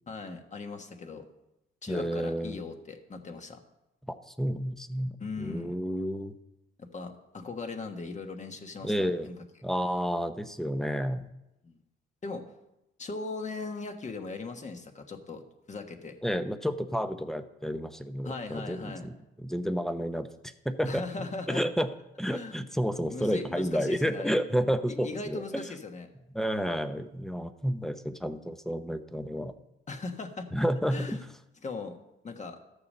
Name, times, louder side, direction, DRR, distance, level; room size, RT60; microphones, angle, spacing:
voice 1, 0.1-1.2 1.8-3.6 5.2-5.8 6.8-9.3 11.6-11.8 12.2-12.5 13.0-15.4 15.7-16.1 18.2-19.1 20.8-21.7 22.3-22.6 23.1-24.3 25.0-26.1 29.9-30.5 30.9-31.2 31.6-32.0 32.2-32.6, left 3 dB, 35° left, 5 dB, 1.4 m, -38 dB
voice 2, 1.9-2.6 4.1-6.4 8.8-9.3 9.6-11.3 16.2-20.3 20.6-21.0 21.5-21.9 22.2-25.6 26.3-29.5 30.5-31.2, equal, ahead, 10 dB, 0.8 m, -30 dB
13.0 x 6.8 x 5.5 m, 0.91 s
cardioid pair, 90°, 20 cm